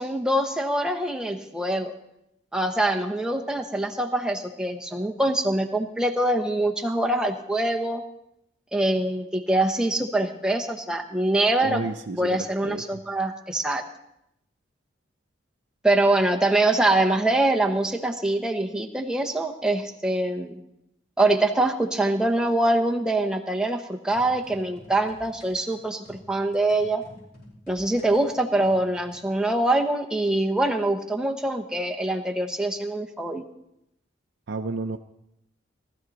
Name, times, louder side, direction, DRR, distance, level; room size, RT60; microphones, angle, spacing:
voice 1, 0.0-1.9 2.5-8.0 8.7-13.8 15.8-20.6 21.2-27.0 27.7-33.4, right 1 dB, 5° right, 2 dB, 1.0 m, -24 dB
voice 2, 11.6-12.8 34.5-35.0, right 3 dB, 70° right, 5 dB, 0.6 m, -31 dB
sound 1, 24.1-29.3, left 1 dB, 50° left, 4.5 m, -50 dB
18.5 x 13.5 x 4.1 m, 0.80 s
head